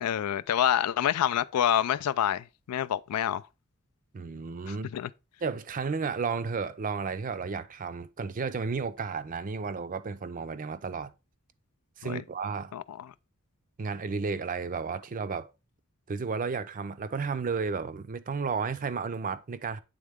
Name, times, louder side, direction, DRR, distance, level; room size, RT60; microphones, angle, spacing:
voice 1, 0.0-3.4 4.7-5.1 12.0-12.2 12.7-13.1, left 10 dB, 80° left, 0.3 m, -27 dB
voice 2, 4.1-4.9 5.4-11.1 12.0-12.7 13.8-15.5 16.1-19.8, right 5 dB, 35° right, 0.4 m, -33 dB
8.5 x 3.6 x 3.5 m
head